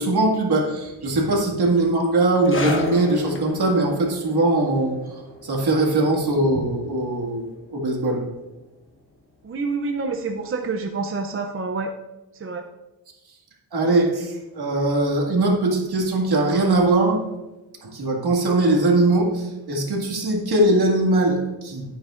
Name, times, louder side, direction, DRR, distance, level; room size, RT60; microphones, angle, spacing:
voice 1, 0.0-8.2 13.7-17.2 17.8-21.8, right 2 dB, 55° right, -1 dB, 2.0 m, -21 dB
sound 1, 2.4-9.4 9.7-9.9 10.7-10.8, left 2 dB, 25° left, 1.1 m, -35 dB
voice 2, 9.4-11.9 12.3-12.7, right 4 dB, 30° right, 4 dB, 0.5 m, -27 dB
11.5 x 9.2 x 2.5 m, 1.1 s
wide cardioid pair, 160°, 45 cm